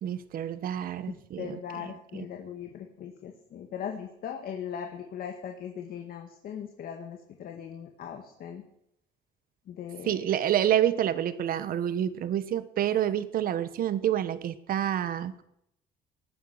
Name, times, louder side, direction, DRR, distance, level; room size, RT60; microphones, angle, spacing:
voice 1, 0.0-1.6 10.1-15.4, right 10 dB, 60° right, 14 dB, 1.2 m, -28 dB
voice 2, 1.1-8.6 9.7-10.3, left 8 dB, 60° left, 4 dB, 1.9 m, -39 dB
18.5 x 10.5 x 6.6 m, 0.79 s
cardioid pair, 110°, 17 cm